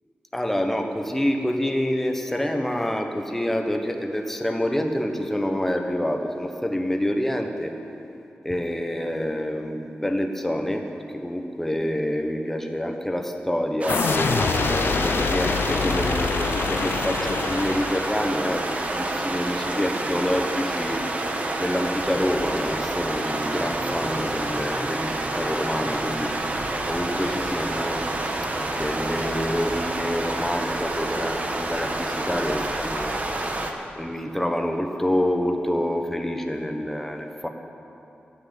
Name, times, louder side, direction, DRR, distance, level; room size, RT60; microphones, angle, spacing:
voice 1, 0.3-7.7 8.4-10.9 11.1-21.0 21.6-26.3 26.9-28.2 28.8-33.2 34.0-37.5, equal, 5° left, 4 dB, 1.1 m, -27 dB
sound 1, 13.8-33.7, right 2 dB, 40° right, 1.2 m, -28 dB
sound 2, 13.9-18.5, left 6 dB, 70° left, 0.5 m, -26 dB
14.0 x 10.0 x 8.8 m, 2.9 s
wide cardioid pair, 140°, 4 cm